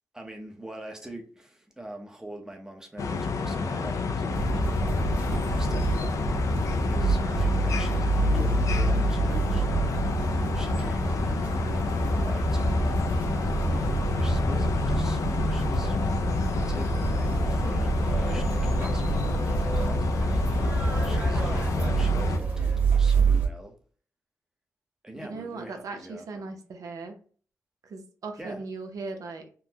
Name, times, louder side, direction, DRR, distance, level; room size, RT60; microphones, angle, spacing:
voice 1, 0.1-4.3 4.7-6.2 6.9-9.7 10.5-11.3 12.2-13.4 14.2-16.0 16.7-20.4 21.0-23.8 25.0-26.5 28.4-28.6, right 1 dB, 10° right, 0.7 m, -44 dB
sound 1, 3.0-22.4, left 4 dB, 65° left, 0.4 m, -29 dB
sound 2, 4.3-23.5, right 3 dB, 25° right, 1.2 m, -27 dB
voice 2, 25.1-27.2 27.8-29.5, right 3 dB, 75° right, 0.6 m, -38 dB
3.7 x 2.0 x 2.8 m
wide cardioid pair, 95°, 6 cm